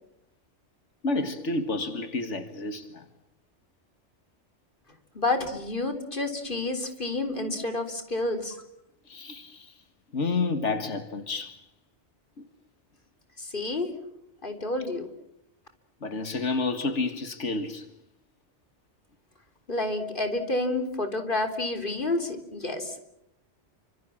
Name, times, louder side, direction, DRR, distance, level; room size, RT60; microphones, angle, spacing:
voice 1, 1.0-3.1 9.1-9.7 10.1-11.6 12.4-12.5 16.0-17.9, left 3 dB, 90° left, 2.1 m, -30 dB
voice 2, 5.1-8.6 13.4-13.9 14.4-15.1 19.7-22.9, left 2 dB, 45° left, 3.9 m, -29 dB
30.0 x 26.0 x 7.4 m
omnidirectional pair, 1.2 m